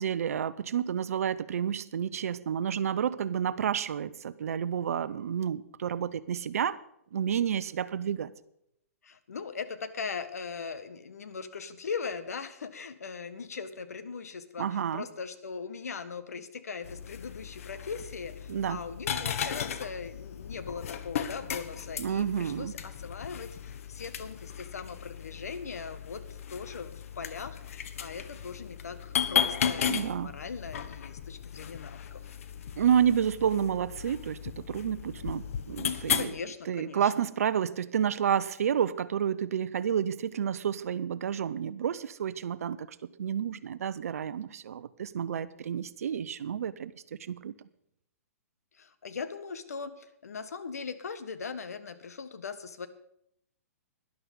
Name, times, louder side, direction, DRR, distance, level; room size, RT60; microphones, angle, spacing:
voice 1, 0.0-6.8 7.1-8.3 14.6-15.1 18.5-18.8 22.0-22.7 29.9-30.3 32.8-36.3 36.7-46.9 47.2-47.5, right 8 dB, 70° right, 16 dB, 0.8 m, -30 dB
voice 2, 9.0-32.2 36.1-37.1 48.7-52.9, left 5 dB, 80° left, 11 dB, 1.4 m, -40 dB
sound 1, 16.8-36.2, left 8 dB, 65° left, 1.3 m, -35 dB
12.5 x 11.0 x 5.5 m, 0.74 s
hypercardioid pair, 135°, 8 cm